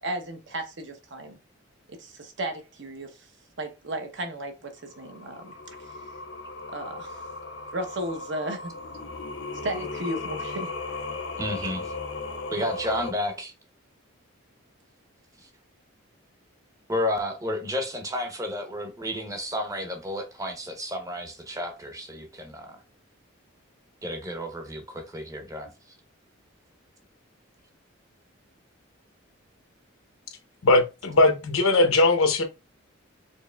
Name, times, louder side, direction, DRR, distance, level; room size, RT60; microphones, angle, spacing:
voice 1, 0.0-1.4 2.0-3.3 3.6-5.5 5.8-5.9 6.7-7.2 7.7-8.7 9.6-10.7 11.6-11.7, right 1 dB, 55° right, 0.8 m, -34 dB
Singing, 4.9-13.1, left 3 dB, 55° left, 0.5 m, -36 dB
voice 2, 11.4-11.8 12.5-13.5 15.4-15.5 16.9-22.8 24.0-25.7, left 1 dB, 15° right, 0.7 m, -31 dB
voice 3, 30.6-32.4, left 2 dB, 85° left, 0.8 m, -20 dB
4.5 x 3.0 x 2.2 m
head